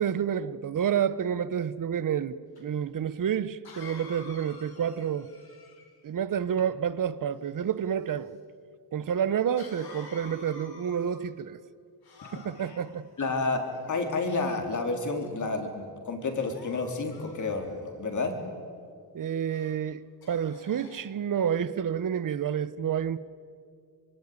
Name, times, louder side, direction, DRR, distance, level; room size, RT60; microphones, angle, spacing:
voice 1, 0.0-5.3 6.0-8.4 8.9-11.6 12.3-13.1 19.1-23.2, right 8 dB, 50° right, 1.0 m, -29 dB
Cough, 2.6-2.7 3.6-6.0 9.6-11.3 12.0-12.9 13.7-14.4 15.0-15.3 16.3-17.9 19.5-19.8 20.2-21.1, left 3 dB, 65° left, 5.2 m, -49 dB
voice 2, 13.2-18.4, left 3 dB, 45° left, 4.0 m, -30 dB
25.0 x 24.0 x 9.7 m
cardioid pair, 115°, 40 cm